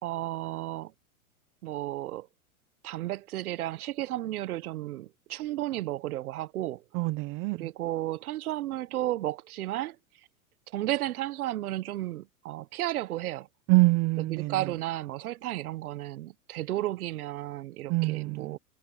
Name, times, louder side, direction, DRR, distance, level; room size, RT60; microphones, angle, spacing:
voice 1, 0.0-0.9 1.6-2.3 2.8-6.8 7.5-10.0 10.7-13.5 14.2-18.6, right 15 dB, 75° right, 1.2 m, -33 dB
voice 2, 6.9-7.7 13.7-14.5 17.9-18.6, right 23 dB, 30° right, 0.6 m, -25 dB
hypercardioid pair, 140°, 44 cm